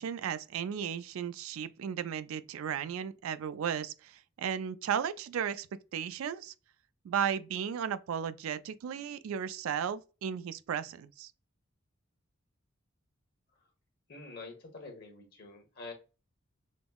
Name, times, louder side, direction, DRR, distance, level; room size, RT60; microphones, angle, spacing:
voice 1, 0.0-5.7 5.9-6.5 7.0-11.3, right 8 dB, 80° right, 0.3 m, -35 dB
voice 2, 14.1-15.9, left 3 dB, 50° left, 0.9 m, -46 dB
5.2 x 2.0 x 2.2 m
head